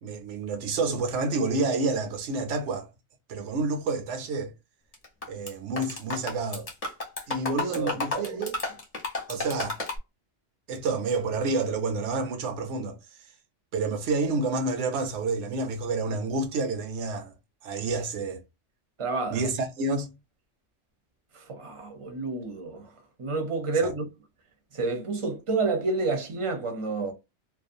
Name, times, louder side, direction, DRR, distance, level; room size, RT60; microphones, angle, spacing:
voice 1, 0.0-2.9 3.3-4.5 5.3-6.7 7.3-8.6 9.3-9.8 10.7-13.0 13.7-17.3 17.6-18.4 19.3-20.1, right 3 dB, 80° right, 1.0 m, -29 dB
sound 1, 4.9-5.5 5.8-10.0, left 3 dB, 35° left, 0.9 m, -32 dB
voice 2, 7.4-8.4 19.0-19.4 21.3-22.9 23.2-24.1 24.7-27.1, right 3 dB, 35° right, 0.6 m, -29 dB
2.6 x 2.2 x 2.5 m
omnidirectional pair, 1.2 m